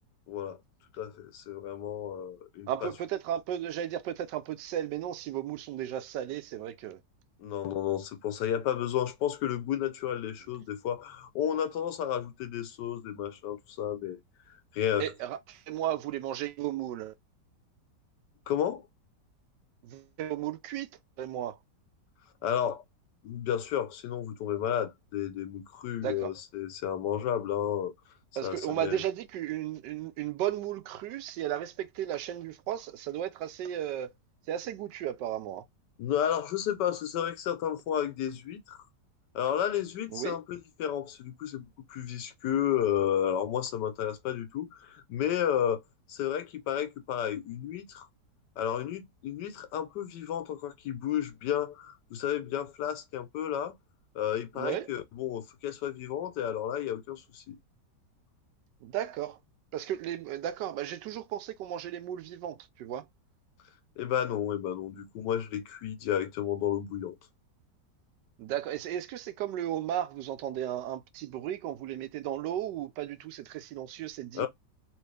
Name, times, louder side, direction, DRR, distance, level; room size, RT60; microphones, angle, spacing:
voice 1, 0.3-0.6 0.9-2.9 7.4-14.2 14.7-15.1 18.5-18.9 22.4-22.8 23.2-27.9 28.4-29.0 36.0-38.8 39.3-45.8 46.1-48.1 48.6-53.7 54.1-57.6 64.0-67.1 74.3-74.5, left 10 dB, 80° left, 1.3 m, -32 dB
voice 2, 2.7-7.0 15.0-17.1 19.8-20.9 21.2-21.6 26.0-26.3 28.4-34.1 34.5-35.6 40.1-40.4 54.6-54.9 58.8-59.4 59.7-63.0 68.4-74.5, right 11 dB, 80° right, 1.2 m, -34 dB
3.1 x 3.0 x 3.2 m
omnidirectional pair, 1.9 m